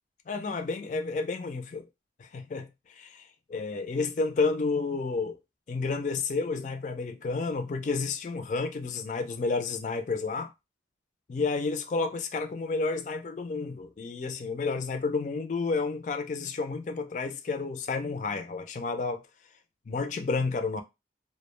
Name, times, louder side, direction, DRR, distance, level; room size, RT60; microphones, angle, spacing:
voice 1, 0.3-1.9 2.2-5.4 5.7-10.5 11.3-19.2 19.9-20.8, left 4 dB, 40° left, 0.3 m, -31 dB
2.3 x 2.0 x 3.0 m
head